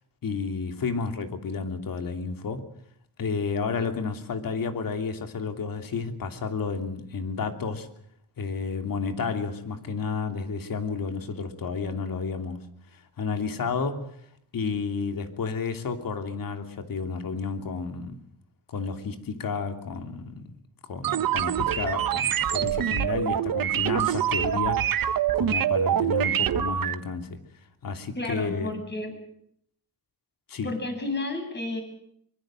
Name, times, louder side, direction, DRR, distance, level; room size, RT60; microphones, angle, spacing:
voice 1, 0.2-2.6 3.2-7.9 8.4-12.6 13.2-14.1 14.5-18.2 18.7-20.5 20.9-27.4 27.8-28.7 30.5-30.7, left 5 dB, 60° left, 6 dB, 3.1 m, -31 dB
sound 1, 21.0-26.9, right 10 dB, 60° right, 1.3 m, -25 dB
voice 2, 28.2-29.1 30.6-31.8, left 2 dB, 25° left, 4 dB, 7.9 m, -31 dB
24.0 x 23.0 x 7.7 m, 0.73 s
cardioid pair, 95°, 38 cm